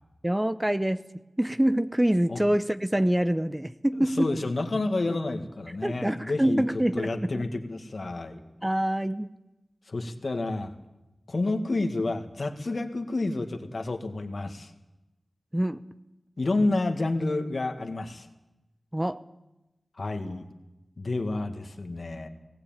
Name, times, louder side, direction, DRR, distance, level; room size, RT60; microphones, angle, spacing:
voice 1, 0.2-1.1 1.4-4.3 5.0-5.2 5.8-7.4 8.6-9.3 15.5-15.8 18.9-19.2, right 1 dB, 15° right, 12 dB, 0.8 m, -25 dB
voice 2, 4.0-6.6 7.0-8.4 9.9-10.7 11.3-14.7 16.4-18.3 20.0-20.5 21.0-22.3, left 2 dB, 65° left, 5 dB, 1.9 m, -29 dB
19.0 x 16.5 x 9.0 m, 0.99 s
wide cardioid pair, 50°, 0 cm